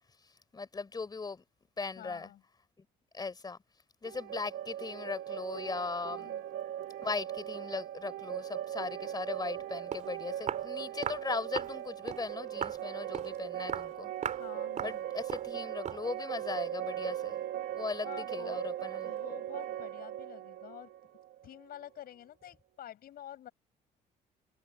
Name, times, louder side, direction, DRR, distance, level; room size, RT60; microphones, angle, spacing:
voice 1, 0.5-1.4 1.8-2.3 2.8-2.9 3.1-3.6 4.0-6.3 7.0-14.1 14.8-17.4 17.7-19.1, left 4 dB, 25° left, 3.8 m, -38 dB
voice 2, 2.0-2.4 6.0-6.4 14.4-15.1 18.0-18.6 19.0-20.9 21.4-23.5, left 11 dB, 65° left, 7.6 m, -49 dB
sound 1, 4.0-21.8, right 11 dB, 75° right, 1.5 m, -39 dB
Walk footsteps, 9.6-9.7 9.9-10.1 10.5-10.7 11.0-11.3 11.6-11.8 12.1-12.3 12.6-12.8 13.1-13.4 13.7-13.9 14.2-14.5 14.8-15.0 15.3-15.5 15.9-16.1, right 8 dB, 45° right, 2.9 m, -37 dB
cardioid pair, 110°, 17 cm